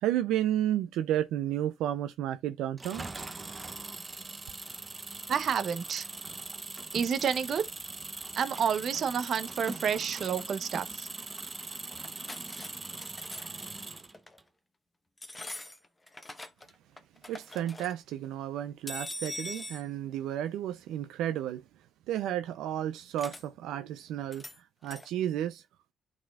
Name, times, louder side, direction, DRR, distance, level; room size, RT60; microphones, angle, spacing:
voice 1, 0.0-3.0 17.3-21.6 22.1-24.4 24.8-25.6, right 11 dB, 90° right, 0.4 m, -32 dB
Engine, 2.8-14.4, right 3 dB, 25° right, 0.8 m, -41 dB
voice 2, 5.3-6.1 6.9-7.6 8.4-11.1, right 7 dB, 60° right, 0.8 m, -29 dB
sound 1, 12.0-12.7 13.0-13.6 14.1-14.4 15.2-16.7 17.0-17.9 18.9-19.8 23.2-23.4 24.3-24.6 24.8-25.1, left 2 dB, 20° left, 1.0 m, -42 dB
11.5 x 4.1 x 2.3 m
cardioid pair, 90°, 0 cm